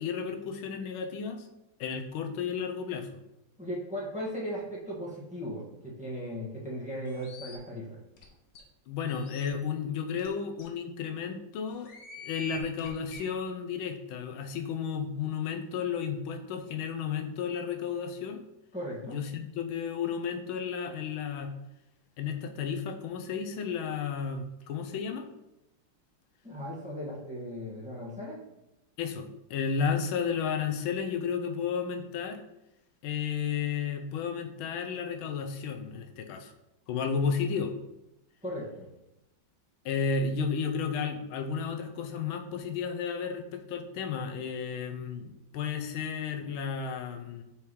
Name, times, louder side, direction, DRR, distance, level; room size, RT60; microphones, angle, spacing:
voice 1, 0.0-1.5 1.8-3.1 8.9-11.9 12.2-18.4 19.0-21.5 22.2-25.3 29.0-32.4 33.0-36.5 36.9-37.7 39.8-47.4, left 6 dB, 90° left, 5 dB, 1.5 m, -33 dB
voice 2, 3.6-8.0 18.7-19.2 26.4-28.4 38.4-38.9, equal, 5° right, -5 dB, 1.2 m, -37 dB
sound 1, 7.1-7.5 8.2-8.3 8.5-8.6 9.1-9.5 10.2-10.3 10.6-10.7 11.7-13.2, left 2 dB, 60° left, 1.5 m, -46 dB
6.8 x 4.8 x 3.1 m, 0.88 s
omnidirectional pair, 2.2 m